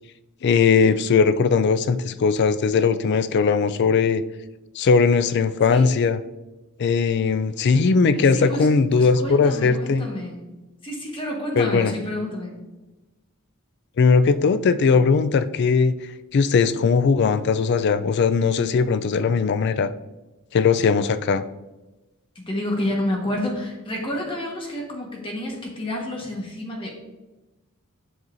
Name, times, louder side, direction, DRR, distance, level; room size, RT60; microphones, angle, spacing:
voice 1, 0.4-4.2 4.8-6.2 6.8-10.1 11.6-11.9 14.0-15.9 16.3-19.9 20.5-21.4, left 5 dB, 50° left, 12 dB, 0.3 m, -19 dB
voice 2, 8.1-10.5 10.8-12.6 22.3-26.9, left 1 dB, 25° left, -1 dB, 1.4 m, -29 dB
7.7 x 5.4 x 2.6 m, 1.1 s
head